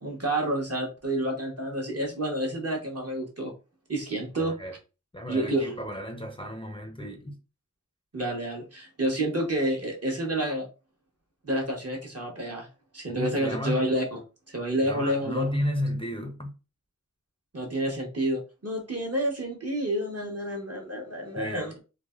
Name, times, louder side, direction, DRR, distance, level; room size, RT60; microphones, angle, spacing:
voice 1, 0.0-3.5 3.9-4.5 5.3-5.7 8.1-10.7 11.4-12.7 12.9-14.2 14.5-15.5 17.5-21.8, right 1 dB, 50° right, 1.0 m, -29 dB
voice 2, 4.4-4.7 5.1-7.4 13.1-13.9 14.8-16.5 21.4-21.8, equal, 15° left, 0.5 m, -32 dB
3.3 x 2.1 x 2.3 m
wide cardioid pair, 45°, 31 cm